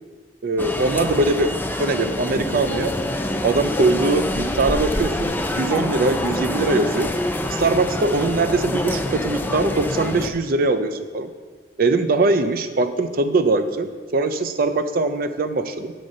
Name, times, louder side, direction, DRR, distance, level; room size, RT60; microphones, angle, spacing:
voice 1, 0.4-1.5 1.8-2.9 3.4-7.1 7.5-11.3 11.8-15.9, right 3 dB, 50° right, 9 dB, 0.4 m, -21 dB
sound 1, 0.6-10.3, left 1 dB, 10° left, 0.3 m, -26 dB
7.8 x 3.7 x 5.3 m, 1.5 s
head